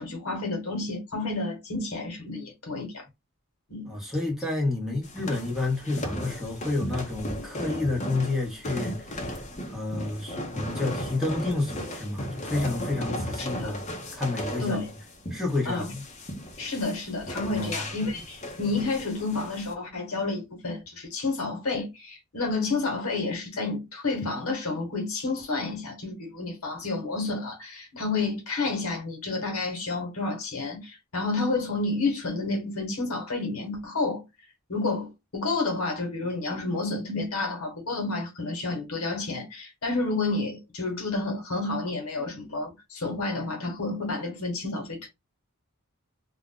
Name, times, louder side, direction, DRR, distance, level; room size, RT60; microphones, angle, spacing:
voice 1, 0.0-3.0 3.7-3.9 13.4-13.7 14.6-14.9 15.6-15.9 16.6-34.2 34.7-45.1, left 3 dB, 80° left, 1.1 m, -30 dB
voice 2, 3.9-9.3 9.7-13.8 14.1-14.8 15.3-16.0 17.6-17.8, left 2 dB, ahead, 0.9 m, -30 dB
sound 1, 5.0-19.7, equal, 35° left, 0.7 m, -36 dB
2.5 x 2.1 x 3.5 m
head